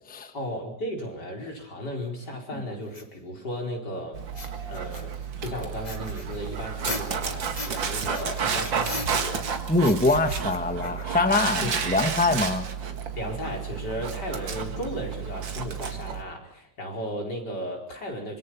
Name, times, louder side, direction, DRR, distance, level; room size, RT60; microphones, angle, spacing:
voice 1, 0.3-4.2 4.7-9.5 11.6-11.8 13.2-18.4, equal, 60° left, 1 dB, 5.4 m, -35 dB
sound 1, 2.9-3.0 4.3-5.3 5.8-7.9 8.1-9.5 9.8-11.3, left 1 dB, 20° left, 2.6 m, -37 dB
Dog, 4.1-16.2, right 6 dB, 85° right, 2.6 m, -31 dB
voice 2, 9.7-12.6, left 2 dB, 5° left, 8 dB, 1.3 m, -23 dB
25.5 x 24.5 x 5.9 m, 0.67 s
omnidirectional pair, 2.0 m